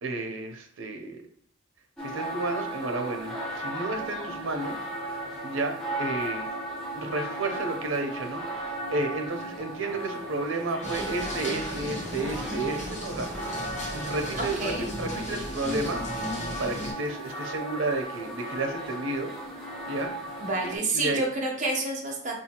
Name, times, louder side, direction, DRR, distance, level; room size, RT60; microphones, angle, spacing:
voice 1, 0.0-1.2 2.0-4.8 5.4-6.5 6.9-13.5 13.9-16.0 16.6-19.3 19.9-20.3 20.6-21.2, right 2 dB, 85° right, 4 dB, 0.7 m, -32 dB
sound 1, 2.0-20.8, right 1 dB, 5° left, 0.9 m, -36 dB
sound 2, 10.8-16.9, left 1 dB, 35° left, 1.1 m, -36 dB
voice 2, 14.3-14.9 20.4-22.3, right 2 dB, 40° right, -1 dB, 0.8 m, -29 dB
5.1 x 2.7 x 2.9 m, 0.68 s
head